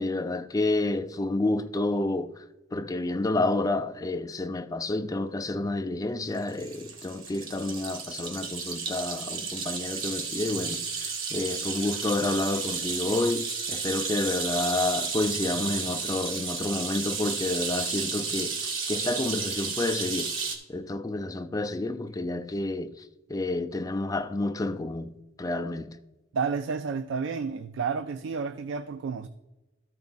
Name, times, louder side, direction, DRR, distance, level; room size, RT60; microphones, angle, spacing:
voice 1, 0.0-2.4 2.7-20.3 20.7-26.0, left 2 dB, 15° left, 0.3 m, -29 dB
sound 1, 6.3-20.6, right 5 dB, 85° right, 1.5 m, -32 dB
voice 2, 26.3-29.3, right 5 dB, 70° right, 0.3 m, -31 dB
13.0 x 4.7 x 4.0 m
head